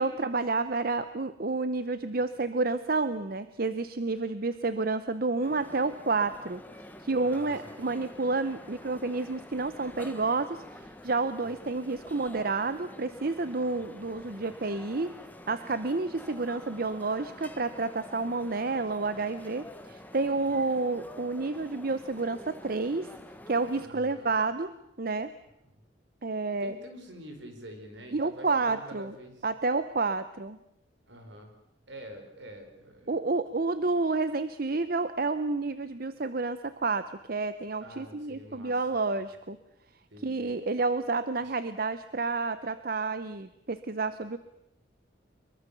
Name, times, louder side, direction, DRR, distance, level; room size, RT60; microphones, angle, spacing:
voice 1, 0.0-6.6 7.0-15.1 15.5-23.1 23.5-25.3 26.2-26.7 28.1-29.1 29.4-30.6 33.1-39.6 40.2-44.4, right 3 dB, 50° right, 12 dB, 0.8 m, -30 dB
sound 1, 5.4-23.9, left 1 dB, 10° left, 1.3 m, -48 dB
voice 2, 7.2-8.0 11.4-11.5 13.7-13.8 20.3-20.6 23.8-24.3 25.7-25.8 26.6-29.5 31.1-31.5 31.9-33.2 37.8-39.3 40.1-40.5 41.4-41.5, right 1 dB, 70° right, 5 dB, 4.9 m, -47 dB
24.0 x 23.0 x 7.0 m, 0.82 s
head